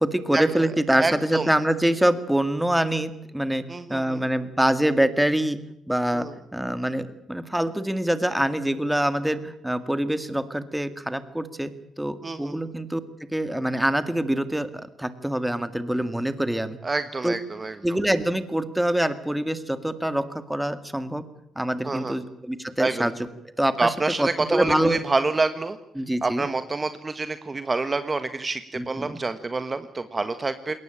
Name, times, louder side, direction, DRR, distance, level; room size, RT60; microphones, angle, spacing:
voice 1, 0.0-5.6 5.9-11.7 12.0-16.8 17.2-17.3 17.8-21.2 21.6-23.1 23.6-23.9 24.2-25.0 26.0-26.5 28.7-29.2, right 1 dB, 5° right, 12 dB, 2.0 m, -25 dB
voice 2, 0.9-1.5 3.7-4.3 6.1-6.3 12.2-12.6 16.8-17.8 21.8-22.2 22.8-23.1 23.8-25.8 26.2-30.8, right 3 dB, 25° right, 11 dB, 1.4 m, -27 dB
21.5 x 18.5 x 8.9 m, 0.83 s
cardioid pair, 90°, 0 cm